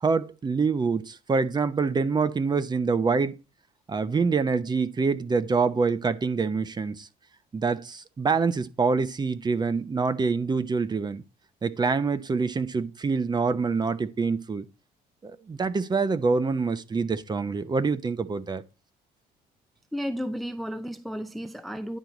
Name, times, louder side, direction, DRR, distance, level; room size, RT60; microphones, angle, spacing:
voice 1, 0.0-3.4 3.9-7.1 7.5-11.2 11.6-14.6 15.2-18.6, right 4 dB, 25° right, 0.8 m, -26 dB
voice 2, 19.9-22.0, equal, ahead, 0.5 m, -33 dB
10.5 x 4.6 x 3.9 m
cardioid pair, 110°, 17 cm